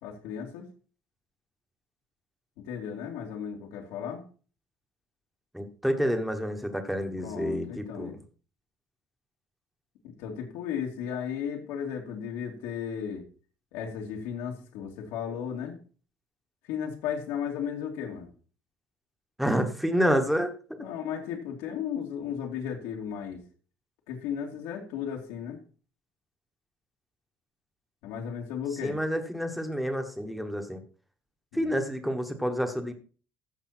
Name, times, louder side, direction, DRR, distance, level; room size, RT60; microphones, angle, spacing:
voice 1, 0.0-0.6 2.6-4.2 7.2-8.2 10.2-13.2 13.7-15.8 16.7-18.3 20.8-23.4 24.1-25.6 28.0-29.0 31.5-31.8, left 8 dB, 85° left, -2 dB, 2.9 m, -35 dB
voice 2, 5.5-8.2 19.4-20.5 28.8-30.8 31.5-32.9, equal, ahead, 5 dB, 1.3 m, -28 dB
15.0 x 6.8 x 4.4 m, 0.39 s
cardioid pair, 175°, 5 cm